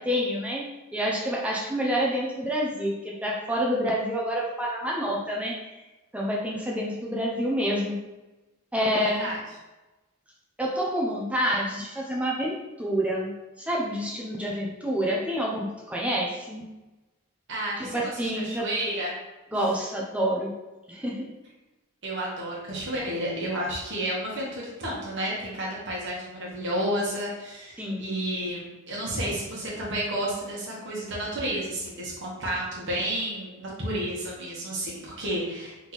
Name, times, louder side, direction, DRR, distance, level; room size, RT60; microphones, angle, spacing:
voice 1, 0.0-5.7 6.1-8.0 8.7-9.3 10.6-16.6 17.8-18.7 19.5-20.5 20.9-21.3 27.8-28.1, equal, 5° right, -3 dB, 0.5 m, -28 dB
voice 2, 9.0-9.4 17.5-19.1 22.0-35.9, right 1 dB, 55° right, -5 dB, 1.3 m, -31 dB
3.6 x 3.1 x 4.0 m, 1.1 s
head